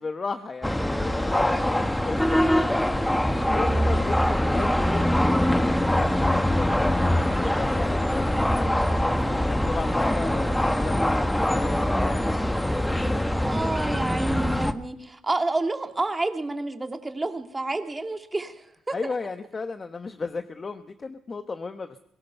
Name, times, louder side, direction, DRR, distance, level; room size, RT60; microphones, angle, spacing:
voice 1, 0.0-2.4 2.9-9.0 9.2-12.2 13.0-13.4 18.9-22.0, left 4 dB, 35° left, 8 dB, 1.2 m, -35 dB
sound 1, 0.6-14.7, left 1 dB, 5° left, 1.4 m, -23 dB
voice 2, 13.3-18.5 18.9-19.0, right 2 dB, 20° right, 6 dB, 2.4 m, -29 dB
22.5 x 17.5 x 6.9 m, 0.72 s
cardioid pair, 90°, 0 cm